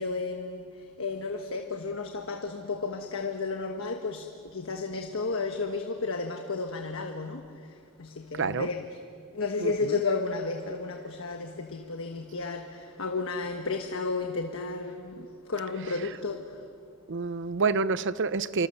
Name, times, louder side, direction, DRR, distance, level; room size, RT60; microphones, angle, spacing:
voice 1, 0.0-8.8 9.3-16.7, left 3 dB, 65° left, 1.3 m, -33 dB
voice 2, 8.3-8.7 9.6-10.0 17.1-18.7, right 4 dB, 55° right, 0.7 m, -28 dB
28.5 x 25.0 x 6.8 m
head